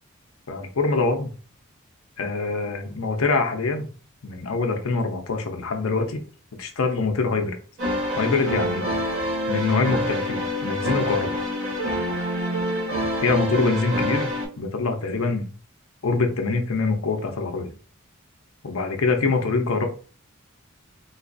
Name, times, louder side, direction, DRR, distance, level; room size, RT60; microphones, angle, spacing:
voice 1, 0.5-1.3 2.2-3.9 4.2-6.2 6.6-7.6 8.2-8.9 9.5-11.4 13.2-15.5 16.0-17.7 18.6-19.9, left 3 dB, 80° left, 5 dB, 0.7 m, -24 dB
sound 1, 7.8-14.5, equal, 75° right, 1.2 m, -26 dB
3.9 x 2.4 x 2.5 m, 0.39 s
head